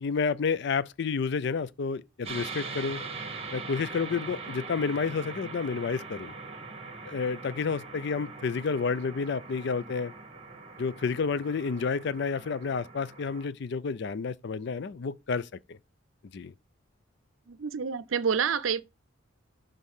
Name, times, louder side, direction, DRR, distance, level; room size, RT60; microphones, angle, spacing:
voice 1, 0.0-3.0 3.5-6.3 7.0-10.1 10.8-15.8 16.3-16.5, left 5 dB, 55° left, 0.4 m, -30 dB
sound 1, 2.2-13.5, right 4 dB, 30° right, 1.1 m, -42 dB
voice 2, 17.5-18.8, right 6 dB, 75° right, 0.5 m, -28 dB
6.4 x 3.8 x 5.4 m
head